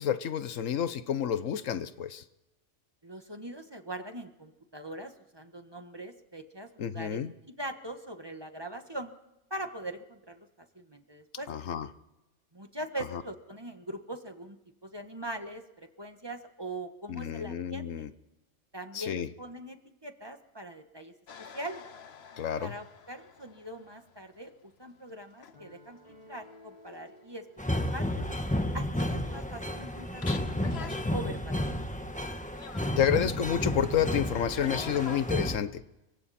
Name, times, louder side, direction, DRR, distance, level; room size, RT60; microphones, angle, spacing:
voice 1, 0.0-2.2 6.8-7.3 11.5-11.9 13.1-13.2 17.1-18.1 18.9-19.3 22.4-22.7 33.0-35.8, left 9 dB, 85° left, 13 dB, 1.3 m, -30 dB
voice 2, 3.0-7.2 7.6-9.1 9.5-10.5 10.7-11.5 12.5-14.6 14.8-18.0 18.7-19.8 20.0-21.1 21.5-21.8 22.6-27.4 27.9-28.3 28.7-31.8, right 1 dB, 20° right, 6 dB, 1.5 m, -41 dB
sound 1, 21.3-24.5 25.1-25.6 25.9-26.0 28.4-28.5 28.7-29.5 29.8-29.9 30.2-31.1 31.3-31.4 32.5-32.9 34.5-35.2, left 7 dB, 60° left, 1.2 m, -46 dB
sound 2, 25.5-28.8, left 1 dB, 30° left, 6.8 m, -56 dB
sound 3, 27.6-35.6, left 1 dB, 5° left, 1.3 m, -32 dB
29.0 x 24.0 x 4.3 m, 0.98 s
omnidirectional pair, 1.3 m